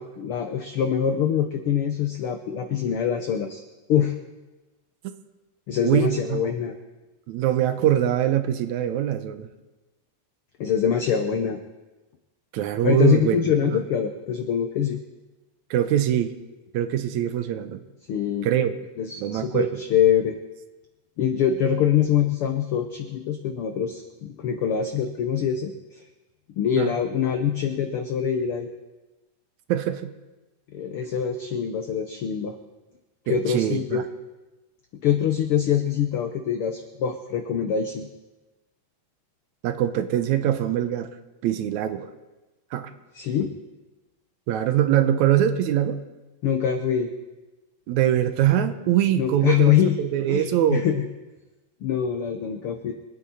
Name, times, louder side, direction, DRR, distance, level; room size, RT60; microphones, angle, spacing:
voice 1, 0.0-3.6 3.9-4.1 5.7-6.7 10.6-11.6 12.8-15.0 18.1-18.5 19.0-20.4 21.2-26.0 26.6-28.7 30.7-32.6 33.3-34.0 35.0-38.1 43.1-43.5 46.4-47.1 49.2-50.0 50.3-51.0 51.8-52.9, left 8 dB, 90° left, 6 dB, 1.2 m, -24 dB
voice 2, 5.8-6.4 7.3-9.5 12.5-13.8 15.7-16.4 16.7-17.8 18.4-18.8 19.2-19.7 26.8-26.9 29.7-30.1 33.3-34.0 39.6-41.2 41.4-42.1 42.7-42.9 44.5-46.0 47.9-49.7 50.0-50.9, right 11 dB, 75° right, 10 dB, 2.0 m, -23 dB
25.0 x 9.5 x 4.2 m, 1.1 s
omnidirectional pair, 3.7 m